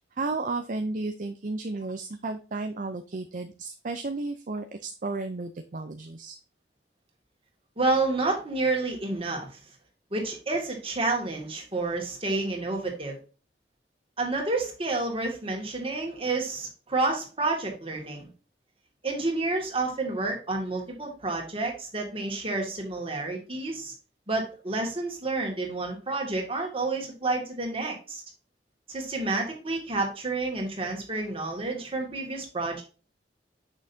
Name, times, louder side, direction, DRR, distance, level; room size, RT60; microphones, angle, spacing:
voice 1, 0.2-6.4, right 3 dB, 50° right, 7 dB, 0.6 m, -33 dB
voice 2, 7.8-9.5 10.1-13.2 14.2-18.3 19.0-23.9 24.3-28.2 28.9-32.8, right 3 dB, 35° right, 1 dB, 2.1 m, -29 dB
6.4 x 6.2 x 2.7 m, 0.35 s
head